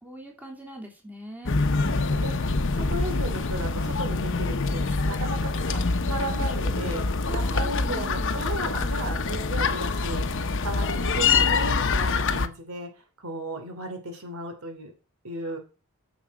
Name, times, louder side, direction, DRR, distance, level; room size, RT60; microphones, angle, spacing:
voice 1, 0.0-1.6 7.2-8.3, right 1 dB, 10° right, 0 dB, 3.2 m, -41 dB
sound 1, 1.4-12.5, left 4 dB, 60° left, 0.9 m, -25 dB
voice 2, 1.8-2.3 2.7-7.0 7.3-12.9 13.2-14.9 15.2-15.6, right 1 dB, 80° right, 5 dB, 3.2 m, -35 dB
13.5 x 7.3 x 4.8 m, 0.33 s
head